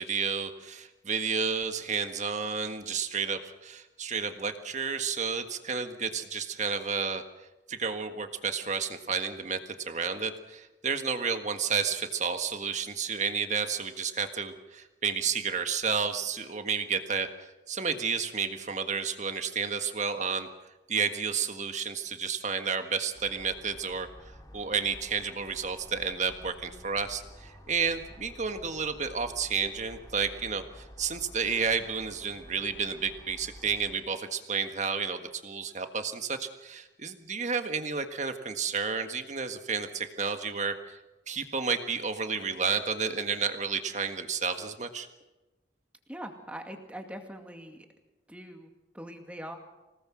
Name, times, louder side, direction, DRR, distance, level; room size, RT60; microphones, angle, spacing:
voice 1, 0.0-7.2 7.7-17.3 17.7-20.5 20.9-24.1 24.5-41.0 41.3-45.1, right 5 dB, 40° right, 7 dB, 1.6 m, -31 dB
sound 1, 23.1-34.0, equal, 20° left, 2.7 m, -50 dB
voice 2, 46.1-47.9 48.3-49.6, equal, 5° right, 4 dB, 2.3 m, -42 dB
26.0 x 18.5 x 6.3 m, 1.0 s
head